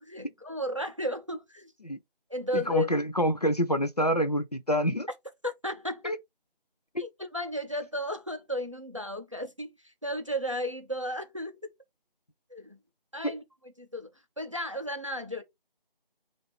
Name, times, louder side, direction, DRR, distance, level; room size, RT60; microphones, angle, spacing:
voice 1, 0.0-1.7 2.3-2.9 5.4-6.1 7.0-11.6 12.5-12.8 13.1-13.4 13.8-14.1 14.4-15.4, left 1 dB, 35° right, 0.5 m, -34 dB
voice 2, 2.5-5.1 6.0-6.2 6.9-7.1 13.2-13.3, equal, 45° left, 0.4 m, -27 dB
4.8 x 2.5 x 3.0 m
figure-of-eight pair, 175°, 29 cm